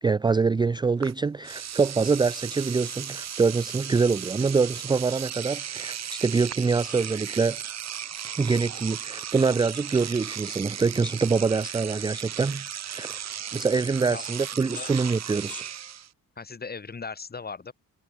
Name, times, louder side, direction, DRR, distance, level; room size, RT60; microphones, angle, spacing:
voice 1, 0.0-7.6 8.2-13.2 13.5-15.6, right 4 dB, 15° right, 0.4 m, -25 dB
Engine / Domestic sounds home sounds, 1.0-1.1 1.4-16.1, right 9 dB, 50° right, 1.6 m, -36 dB
voice 2, 14.6-14.9 16.4-17.7, left 5 dB, 30° left, 2.2 m, -38 dB
cardioid pair, 90°, 34 cm